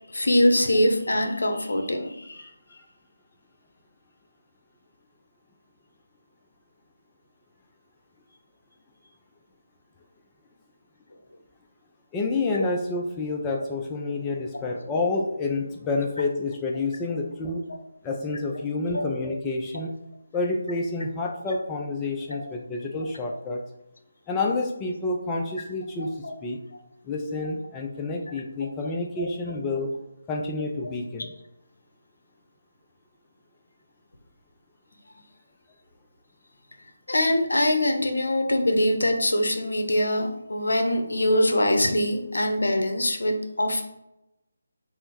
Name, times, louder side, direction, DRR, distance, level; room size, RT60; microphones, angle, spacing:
voice 1, 0.1-2.5 14.5-14.6 18.9-19.1 22.3-22.4 26.0-26.3 29.2-29.3 37.1-43.8, left 1 dB, 75° left, 5 dB, 0.7 m, -23 dB
voice 2, 12.1-17.6 18.0-19.9 20.3-23.6 24.3-26.6 27.0-29.9 30.3-31.3, left 3 dB, 15° left, 1 dB, 0.4 m, -29 dB
3.6 x 2.0 x 4.3 m, 0.87 s
figure-of-eight pair, 155°, 0 cm